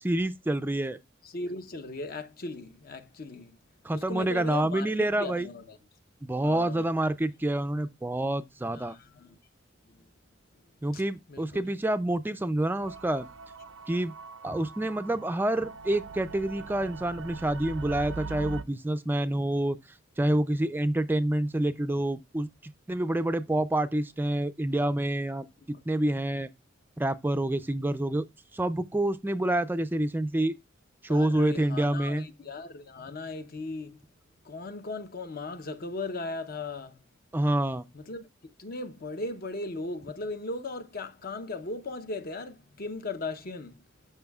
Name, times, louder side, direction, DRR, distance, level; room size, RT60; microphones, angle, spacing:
voice 1, 0.0-1.0 3.8-5.5 6.2-9.0 10.8-13.3 13.9-14.1 14.4-19.8 20.2-26.5 27.0-28.3 28.5-30.6 31.0-32.3 37.3-37.9, right 1 dB, 10° right, 0.3 m, -28 dB
voice 2, 1.2-3.6 3.9-5.8 6.4-6.9 8.7-9.4 9.9-10.1 10.9-11.0 11.3-11.6 31.1-34.0 34.4-37.0 37.9-43.8, left 2 dB, 50° left, 0.8 m, -38 dB
sound 1, 12.8-18.6, right 4 dB, 85° right, 0.5 m, -42 dB
12.0 x 5.6 x 2.3 m
head